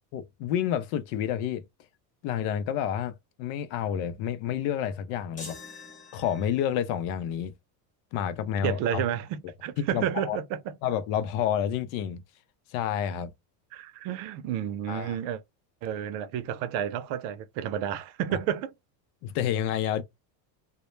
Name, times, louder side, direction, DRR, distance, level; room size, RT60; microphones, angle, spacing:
voice 1, 0.1-1.6 2.2-5.6 6.1-7.5 8.1-9.0 9.8-10.4 10.8-12.2 12.7-13.3 14.9-15.2 18.3-18.4 19.2-20.0, left 9 dB, 70° left, 0.6 m, -29 dB
sound 1, 5.4-6.9, left 4 dB, 15° left, 0.6 m, -45 dB
voice 2, 8.6-10.6 13.7-15.4 15.8-18.7, right 10 dB, 65° right, 0.6 m, -31 dB
2.1 x 2.0 x 3.0 m
supercardioid pair, 125°, 49 cm